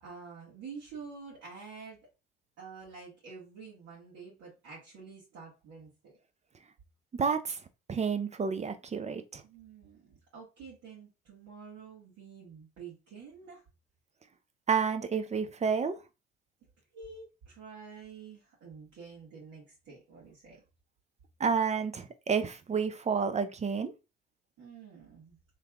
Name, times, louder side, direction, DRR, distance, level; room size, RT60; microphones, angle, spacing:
voice 1, 0.0-2.0 2.6-6.1 9.4-13.6 16.9-20.6 24.6-25.4, right 5 dB, 55° right, 1.6 m, -48 dB
voice 2, 7.1-7.6 7.9-9.4 14.7-16.0 21.4-23.9, right 6 dB, 25° right, 0.5 m, -30 dB
3.3 x 3.1 x 2.4 m
hypercardioid pair, 65°, 30 cm